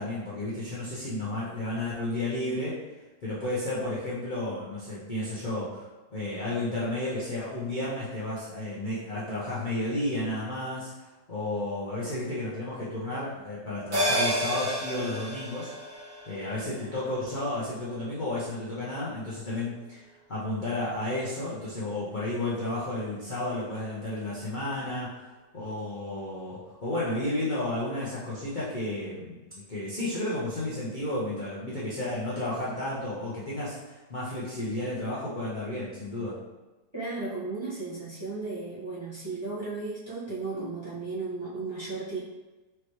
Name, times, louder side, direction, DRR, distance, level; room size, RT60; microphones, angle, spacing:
voice 1, 0.0-2.8 3.2-15.7 16.3-25.3 25.5-36.4, left 1 dB, 40° left, -9 dB, 0.7 m, -32 dB
sound 1, 13.9-18.6 19.0-19.1, equal, 55° right, 2.1 m, -32 dB
voice 2, 36.9-42.2, right 3 dB, 20° right, -11 dB, 1.1 m, -35 dB
4.7 x 3.2 x 3.1 m, 1.2 s
omnidirectional pair, 1.9 m